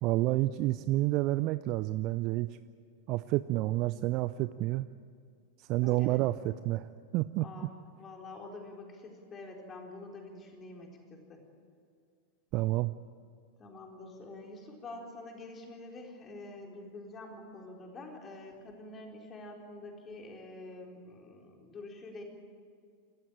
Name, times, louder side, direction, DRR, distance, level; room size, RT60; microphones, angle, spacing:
voice 1, 0.0-2.6 3.1-4.9 5.6-7.4 12.5-12.9, right 17 dB, 40° right, 14 dB, 0.5 m, -29 dB
voice 2, 5.8-6.2 7.4-11.4 13.6-22.2, left 2 dB, 25° left, 1 dB, 4.3 m, -47 dB
27.5 x 14.5 x 8.9 m, 2.3 s
figure-of-eight pair, 90°, 0 cm